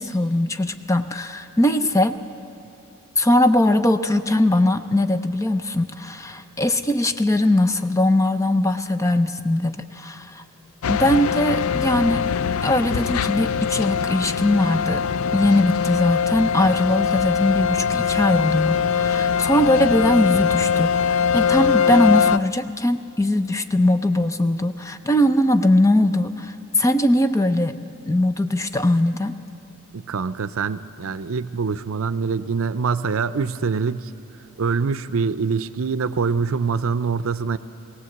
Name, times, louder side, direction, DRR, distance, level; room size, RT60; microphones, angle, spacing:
voice 1, 0.0-2.2 3.2-10.4 10.9-12.3 12.6-15.1 15.3-27.8 28.1-29.4, left 1 dB, 15° left, 9 dB, 0.5 m, -20 dB
sound 1, 10.8-22.4, left 6 dB, 85° left, 0.4 m, -22 dB
voice 2, 29.9-34.1 34.6-37.6, right 5 dB, 75° right, 14 dB, 0.5 m, -24 dB
19.5 x 17.5 x 7.9 m, 2.7 s
head